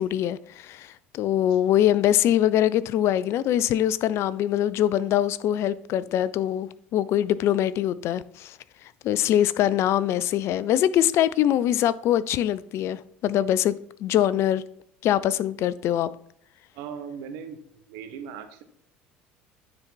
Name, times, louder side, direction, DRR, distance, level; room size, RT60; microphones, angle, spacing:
voice 1, 0.0-8.6 9.0-13.7 14.0-14.6 15.0-16.1, left 11 dB, 55° left, 0.5 m, -23 dB
voice 2, 16.7-17.6 17.9-18.6, right 7 dB, 70° right, 1.0 m, -38 dB
9.5 x 4.0 x 4.6 m
hypercardioid pair, 65°, 5 cm